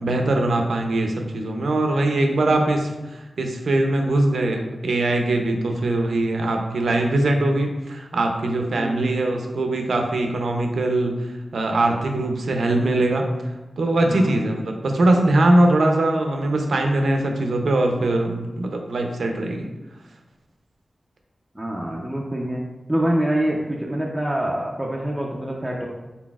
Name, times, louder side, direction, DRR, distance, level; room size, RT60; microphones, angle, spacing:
voice 1, 0.0-11.2 11.5-13.2 13.8-19.7, right 2 dB, 90° right, 3 dB, 0.5 m, -21 dB
voice 2, 14.1-14.4 21.5-22.6 22.9-25.9, right 1 dB, 15° right, -3 dB, 0.5 m, -25 dB
4.0 x 4.0 x 2.3 m, 1.1 s
wide cardioid pair, 75°, 0 cm